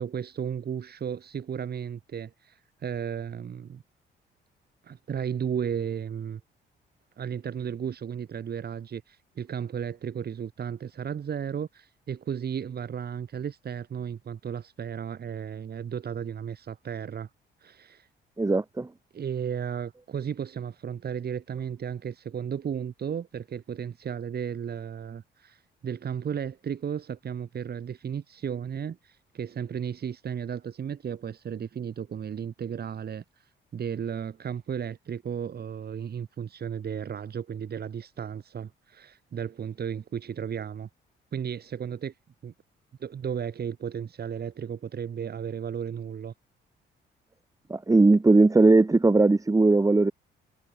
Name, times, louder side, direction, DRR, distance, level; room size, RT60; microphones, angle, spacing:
voice 1, 0.0-3.8 4.8-6.4 7.2-17.3 17.6-18.1 19.1-33.2 33.7-40.9 41.3-42.1 42.4-42.5 43.0-46.3, right 8 dB, 50° right, 4.8 m, -34 dB
voice 2, 18.4-18.9 47.7-50.1, right 3 dB, 15° right, 1.7 m, -19 dB
cardioid pair, 90°, 20 cm